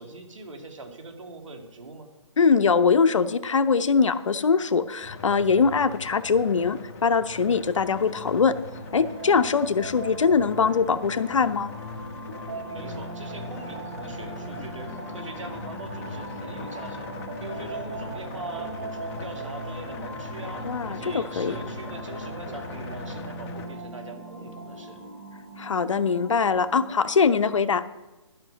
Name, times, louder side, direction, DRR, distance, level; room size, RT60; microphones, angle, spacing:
voice 1, 0.0-2.1 12.5-17.1 17.4-25.0, right 3 dB, 80° right, 4 dB, 2.4 m, -41 dB
voice 2, 2.4-8.6 8.9-11.7 20.6-21.6 25.6-27.8, left 5 dB, 75° left, 12 dB, 0.8 m, -22 dB
sound 1, 5.0-23.7, left 3 dB, 30° left, 1.3 m, -40 dB
sound 2, 7.8-27.0, right 2 dB, 35° right, 3.4 m, -40 dB
12.5 x 5.9 x 7.9 m, 1.1 s
hypercardioid pair, 155°, 16 cm